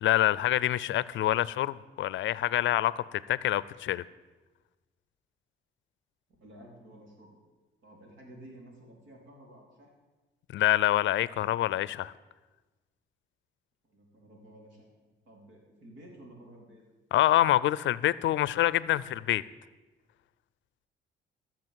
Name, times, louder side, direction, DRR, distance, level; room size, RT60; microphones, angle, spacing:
voice 1, 0.0-4.0 10.5-12.1 17.1-19.4, left 13 dB, 70° left, 19 dB, 0.5 m, -26 dB
voice 2, 6.4-7.4 7.8-9.9 13.8-14.9 15.3-16.8, right 1 dB, 75° right, 0 dB, 4.0 m, -52 dB
14.5 x 7.3 x 7.7 m, 1.2 s
cardioid pair, 90°, 20 cm